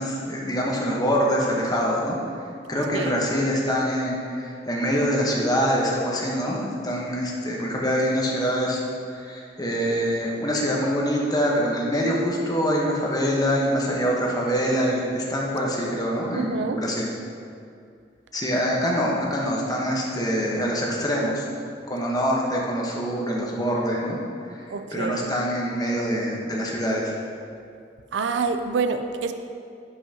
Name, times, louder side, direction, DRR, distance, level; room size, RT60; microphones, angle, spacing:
voice 1, 0.0-2.2 2.7-8.8 9.1-17.1 18.3-21.5 21.9-27.1, equal, 20° left, -2 dB, 1.1 m, -25 dB
voice 2, 16.4-16.8 24.7-25.3 28.1-29.3, right 4 dB, 90° right, 8 dB, 0.5 m, -27 dB
11.0 x 5.6 x 2.9 m, 2.3 s
head